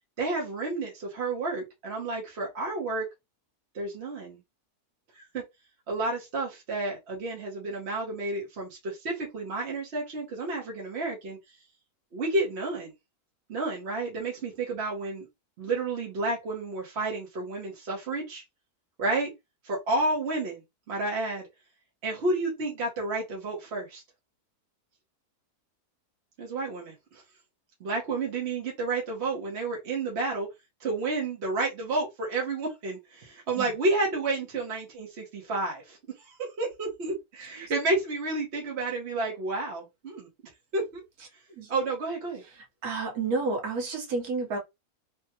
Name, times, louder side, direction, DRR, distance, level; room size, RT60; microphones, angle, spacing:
voice 1, 0.2-3.1 3.7-4.4 5.1-5.4 5.9-11.4 12.1-12.9 13.5-15.3 15.6-18.4 19.0-19.3 19.6-20.6 20.9-21.5 22.0-24.0 26.4-27.2 27.8-30.5 30.8-40.3 40.7-41.0 41.7-42.4, right 2 dB, 50° right, 1.0 m, -31 dB
voice 2, 42.6-44.6, right 3 dB, 75° right, 1.5 m, -31 dB
3.4 x 2.1 x 2.8 m
omnidirectional pair, 1.6 m